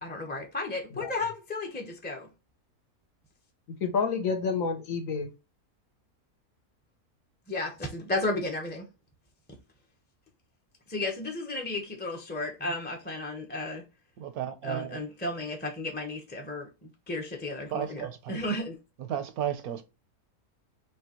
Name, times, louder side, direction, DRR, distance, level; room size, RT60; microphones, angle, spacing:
voice 1, 0.0-2.3 7.5-8.8 10.9-13.8 14.6-16.7 17.1-18.8, left 2 dB, 10° left, 0.8 m, -33 dB
voice 2, 3.7-5.3, left 5 dB, 65° left, 1.5 m, -29 dB
voice 3, 14.2-15.0 17.7-18.4 19.0-19.8, right 10 dB, 80° right, 1.3 m, -33 dB
5.3 x 3.1 x 2.9 m
omnidirectional pair, 1.6 m